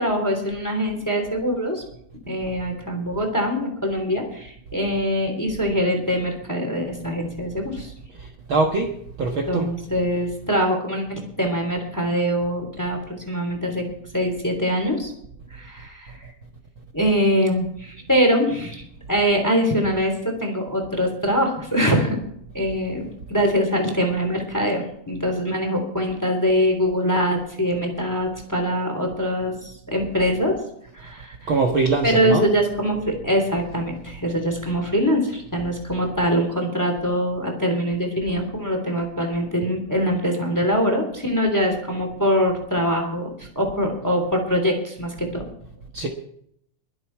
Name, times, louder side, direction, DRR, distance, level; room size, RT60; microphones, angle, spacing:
voice 1, 0.0-1.8 2.3-7.9 9.5-13.8 14.1-15.1 15.5-16.1 16.9-18.8 19.1-22.2 22.5-30.6 30.9-31.5 32.0-45.4, equal, 5° left, 3 dB, 2.8 m, -23 dB
voice 2, 8.2-9.7 16.2-16.3 31.5-32.5 45.9-46.1, right 3 dB, 50° right, 2 dB, 1.8 m, -23 dB
23.0 x 8.0 x 4.7 m, 0.69 s
omnidirectional pair, 3.5 m